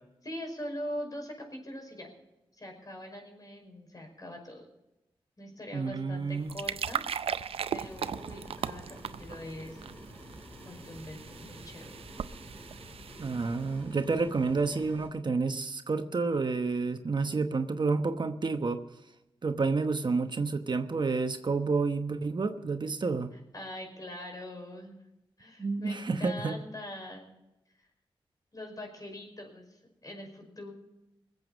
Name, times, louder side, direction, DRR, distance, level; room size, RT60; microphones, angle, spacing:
voice 1, 0.2-2.1 2.5-4.6 5.4-7.4 7.7-9.9 10.6-11.9 23.5-25.0 25.4-27.3 27.8-27.9 28.5-30.7, left 1 dB, 40° left, 2 dB, 5.4 m, -42 dB
voice 2, 5.7-6.6 13.2-18.8 19.4-23.3 25.6-26.5, right 4 dB, 50° right, 7 dB, 1.0 m, -29 dB
sound 1, 6.2-13.8, right 7 dB, 85° right, 0.5 m, -38 dB
sound 2, 7.8-15.1, equal, 15° left, 4.0 m, -49 dB
20.5 x 8.1 x 7.2 m, 0.92 s
cardioid pair, 60°, 10 cm